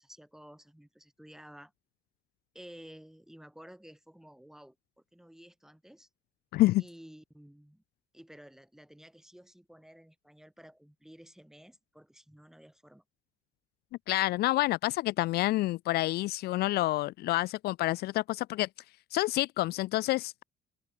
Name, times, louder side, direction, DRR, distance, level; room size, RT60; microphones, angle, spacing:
voice 1, 0.0-1.7 2.5-4.8 5.1-6.1 6.8-7.8 8.1-13.0, equal, 5° right, 6.9 m, -53 dB
voice 2, 6.5-6.8 14.1-18.7 19.1-20.4, left 17 dB, 70° left, 0.4 m, -28 dB
open air
cardioid pair, 110°, 17 cm